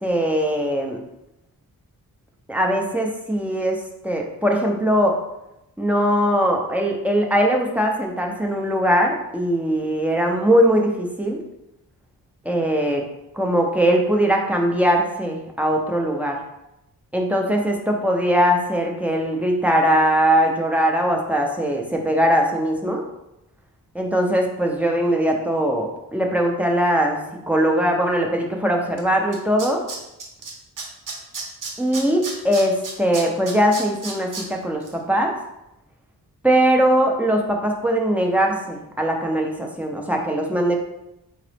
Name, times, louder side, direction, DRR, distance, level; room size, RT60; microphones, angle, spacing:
voice 1, 0.0-1.0 2.5-5.2 5.8-11.4 12.4-13.0 13.3-16.3 17.1-23.0 23.9-27.2 27.5-29.8 31.8-35.4 36.4-40.8, equal, 5° right, 0 dB, 0.5 m, -20 dB
Tools, 29.0-29.1 29.3-30.5 30.8-34.4 34.8-34.9, right 4 dB, 55° right, 0.9 m, -32 dB
3.8 x 3.8 x 3.4 m, 0.88 s
wide cardioid pair, 140°, 39 cm